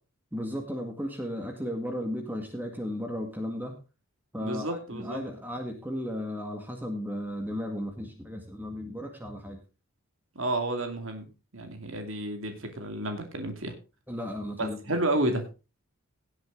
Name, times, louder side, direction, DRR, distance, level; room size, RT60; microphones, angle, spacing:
voice 1, 0.3-3.8 4.3-9.6 14.1-14.8, equal, 10° right, 4 dB, 1.9 m, -35 dB
voice 2, 4.4-5.2 10.3-13.7 14.6-15.4, right 1 dB, 65° right, 5 dB, 2.4 m, -31 dB
17.5 x 8.0 x 3.9 m, 0.31 s
head